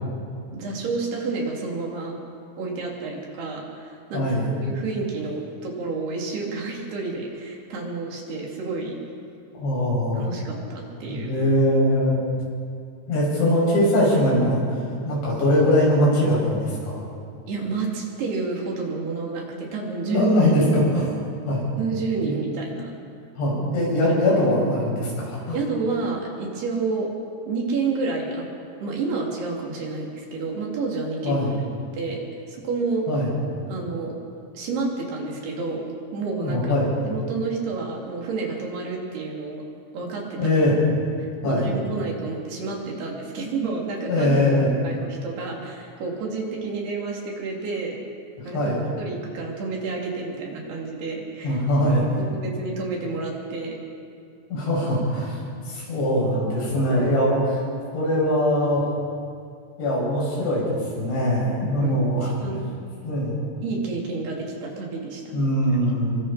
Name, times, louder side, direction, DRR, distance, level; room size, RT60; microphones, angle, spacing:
voice 1, 0.5-2.2 2.6-4.3 4.6-9.0 10.2-11.3 17.5-20.3 20.7-20.9 21.8-22.9 24.0-24.1 25.5-27.1 27.5-28.5 28.8-31.6 31.9-32.2 32.5-33.0 33.7-34.1 34.5-35.8 36.1-36.7 37.0-39.6 39.9-40.4 41.4-44.3 44.8-47.9 48.4-51.6 52.3-53.7 57.6-57.7 61.8-61.9 62.4-62.6 63.6-65.5, right 4 dB, 65° right, -1 dB, 4.9 m, -30 dB
voice 2, 4.1-4.6 9.5-10.2 11.1-12.2 13.1-14.6 15.1-17.0 20.0-21.2 21.5-21.7 22.2-22.3 23.4-25.6 31.2-31.5 33.1-33.3 36.4-36.9 40.4-40.8 41.4-41.7 44.1-44.7 48.5-48.8 51.4-52.2 54.5-55.4 55.7-57.6 57.9-58.8 59.8-60.7 60.9-62.3 63.0-63.4 65.3-66.2, left 1 dB, 85° left, -5 dB, 8.7 m, -21 dB
27.5 x 23.5 x 4.3 m, 2.4 s
omnidirectional pair, 5.0 m